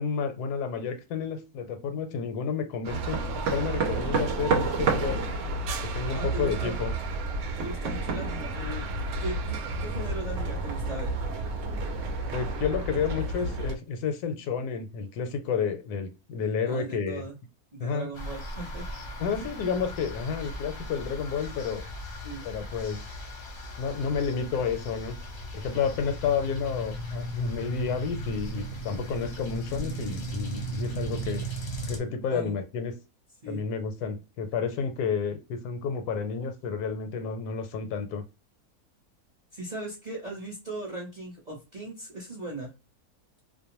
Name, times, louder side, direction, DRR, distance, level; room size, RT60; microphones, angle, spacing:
voice 1, 0.0-3.2 3.5-5.2 5.8-6.9 12.3-17.2 17.8-18.1 19.2-21.8 22.4-23.1 23.8-25.2 25.5-31.5 31.9-33.0 33.5-38.2, left 6 dB, 80° left, 1.1 m, -30 dB
sound 1, 2.8-13.7, right 3 dB, 70° right, 0.7 m, -30 dB
voice 2, 6.1-6.8 7.6-8.8 9.2-11.2 16.7-17.4 17.7-18.8 19.3-19.5 22.2-22.5 32.3-32.5 33.4-33.6 39.5-42.7, right 2 dB, 40° right, 0.7 m, -38 dB
sound 2, 18.1-32.0, right 1 dB, 45° left, 0.7 m, -37 dB
2.5 x 2.1 x 2.8 m
omnidirectional pair, 1.7 m